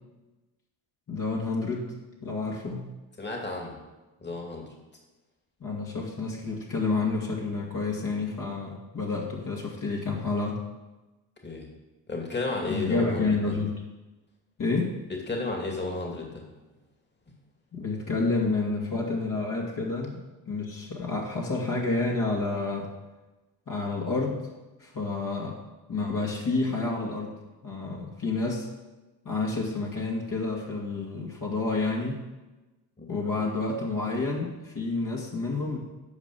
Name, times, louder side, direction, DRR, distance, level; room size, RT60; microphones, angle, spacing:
voice 1, 1.1-1.9 2.2-2.8 5.6-10.6 12.7-13.8 14.6-15.0 17.7-20.2 20.5-22.9 23.7-24.5 24.8-25.6 25.9-27.4 27.6-28.7 29.2-32.2 33.1-35.8, left 3 dB, 40° left, -3 dB, 2.5 m, -29 dB
voice 2, 3.2-3.8 4.2-4.7 11.4-11.7 12.1-13.5 15.1-16.5 33.0-33.1, left 2 dB, 20° left, 1 dB, 2.6 m, -33 dB
9.8 x 5.4 x 6.9 m, 1.1 s
hypercardioid pair, 55°, 49 cm